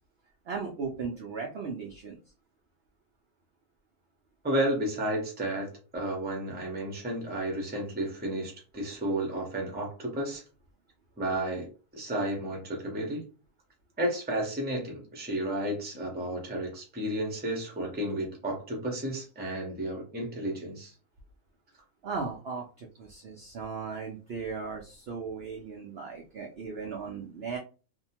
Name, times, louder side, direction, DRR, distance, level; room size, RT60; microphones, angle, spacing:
voice 1, 0.5-2.2 22.0-27.6, right 5 dB, 80° right, 0 dB, 0.5 m, -37 dB
voice 2, 4.4-10.4 11.2-13.2 14.0-20.9, right 1 dB, 10° right, 0 dB, 0.4 m, -32 dB
2.7 x 2.1 x 2.8 m, 0.35 s
omnidirectional pair, 1.7 m